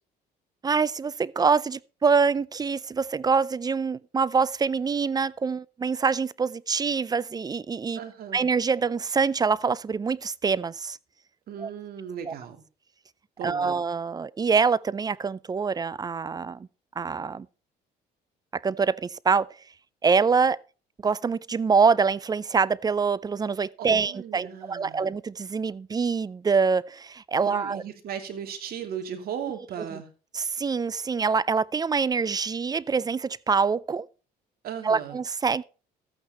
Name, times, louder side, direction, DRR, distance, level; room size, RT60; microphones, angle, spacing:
voice 1, 0.6-8.0 8.3-11.0 11.6-11.7 13.4-16.7 17.0-17.5 18.5-19.5 20.0-20.6 21.0-27.8 30.3-34.1 34.8-35.6, right 5 dB, 25° right, 0.4 m, -25 dB
voice 2, 7.9-8.4 11.5-12.6 13.4-13.8 23.8-25.1 27.4-30.1 34.6-35.2, right 8 dB, 65° right, 2.7 m, -36 dB
13.5 x 8.9 x 4.3 m
cardioid pair, 110°, 17 cm